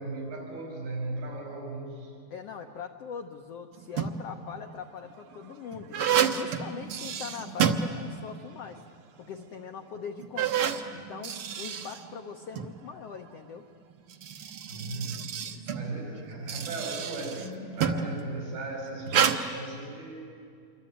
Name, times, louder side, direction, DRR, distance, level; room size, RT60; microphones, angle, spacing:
voice 1, 0.0-2.1 14.7-20.2, right 2 dB, 85° right, 0 dB, 7.2 m, -37 dB
voice 2, 2.3-8.8 9.2-10.6 10.9-13.6, left 7 dB, 75° left, 5 dB, 1.4 m, -41 dB
sound 1, 3.7-4.4 5.0-8.5 8.8-8.9 9.6-9.7 10.2-12.7 13.9-18.2 19.1-19.4, right 8 dB, 70° right, 1.3 m, -30 dB
27.0 x 23.5 x 9.1 m, 2.3 s
omnidirectional pair, 4.2 m